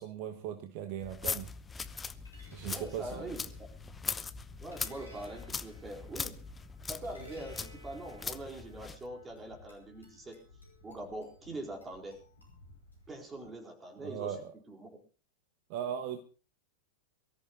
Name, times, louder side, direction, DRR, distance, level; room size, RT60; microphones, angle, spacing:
voice 1, 0.0-1.5 2.5-3.4 14.0-14.5 15.7-16.2, right 9 dB, 45° right, 1.3 m, -38 dB
sound 1, 1.0-9.0, left 5 dB, 15° left, 0.9 m, -41 dB
sound 2, 1.4-13.5, left 1 dB, 80° left, 5.3 m, -57 dB
voice 2, 2.7-3.7 4.6-6.4 6.8-10.4 10.8-12.2 13.1-14.4 14.7-14.9 15.8-16.1, right 1 dB, 15° right, 4.4 m, -43 dB
23.5 x 14.0 x 2.9 m
figure-of-eight pair, 90°, 0 cm